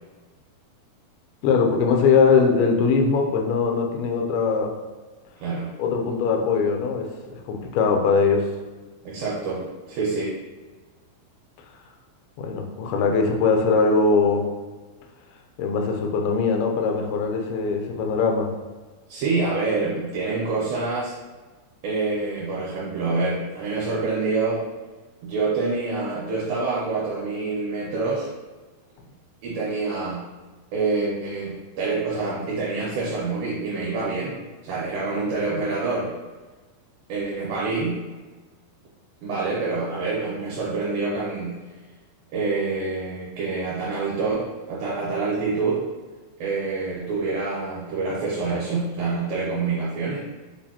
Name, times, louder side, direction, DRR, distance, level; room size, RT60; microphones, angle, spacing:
voice 1, 1.4-4.7 5.8-7.1 7.5-8.4 12.4-14.5 15.6-18.5, left 5 dB, 85° left, 2 dB, 1.9 m, -21 dB
voice 2, 5.4-5.7 9.0-10.4 19.1-21.1 21.8-24.6 25.2-28.3 29.4-30.3 30.7-36.1 37.1-38.0 39.2-41.6 42.3-45.8 46.4-50.3, right 3 dB, 75° right, -6 dB, 2.4 m, -26 dB
6.6 x 2.8 x 2.8 m, 1.3 s
omnidirectional pair, 4.5 m